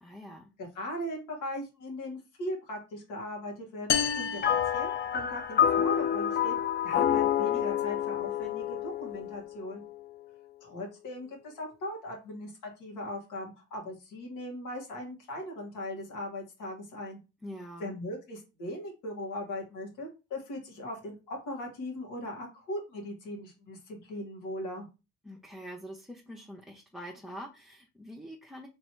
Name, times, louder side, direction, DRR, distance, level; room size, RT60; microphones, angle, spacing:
voice 1, 0.0-0.5 17.4-18.0 25.2-28.7, equal, ahead, 0 dB, 0.7 m, -45 dB
voice 2, 0.6-6.6 6.8-9.8 10.6-17.2 17.8-24.9, left 1 dB, 85° left, 0 dB, 1.9 m, -39 dB
sound 1, 3.9-5.6, left 8 dB, 65° left, 0.8 m, -31 dB
sound 2, 4.4-9.9, left 10 dB, 35° left, 0.5 m, -28 dB
3.3 x 3.0 x 4.6 m, 0.29 s
cardioid pair, 90°, 30 cm